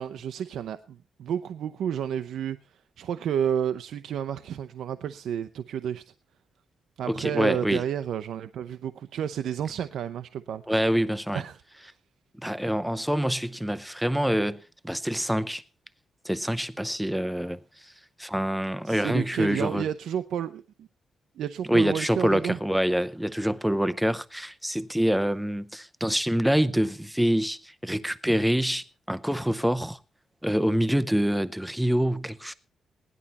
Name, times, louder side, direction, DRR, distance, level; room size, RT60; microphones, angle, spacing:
voice 1, 0.0-6.1 7.0-10.6 11.3-11.6 18.8-20.9 21.4-22.6, right 9 dB, 75° right, 0.7 m, -31 dB
voice 2, 7.1-7.8 10.7-11.4 12.4-15.6 16.2-17.9 18.2-19.9 21.7-30.0 30.4-32.5, equal, ahead, 0.6 m, -26 dB
17.5 x 11.0 x 4.2 m
wide cardioid pair, 180°, 0 cm